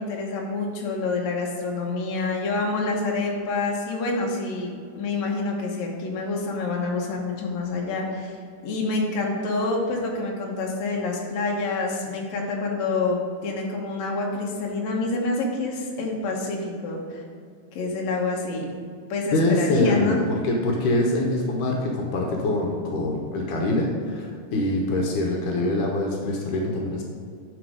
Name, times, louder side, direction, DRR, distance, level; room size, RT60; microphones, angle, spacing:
voice 1, 0.0-8.3 8.6-13.2 13.4-17.2 17.7-18.7 19.1-20.2, left 3 dB, 65° left, -1 dB, 2.4 m, -27 dB
voice 2, 19.3-20.2 20.4-27.0, left 1 dB, 85° left, 0 dB, 2.5 m, -24 dB
11.5 x 4.1 x 5.1 m, 2.2 s
omnidirectional pair, 3.6 m